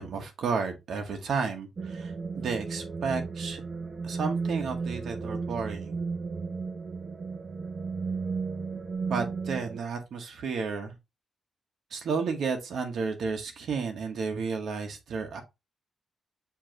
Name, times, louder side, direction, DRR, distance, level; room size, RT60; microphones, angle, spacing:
voice 1, 0.0-3.6 4.0-6.0 9.1-10.9 11.9-15.4, right 5 dB, 70° right, 1.1 m, -32 dB
sound 1, 1.8-9.8, right 4 dB, 35° right, 0.6 m, -34 dB
7.1 x 2.6 x 2.9 m
wide cardioid pair, 130°, 0 cm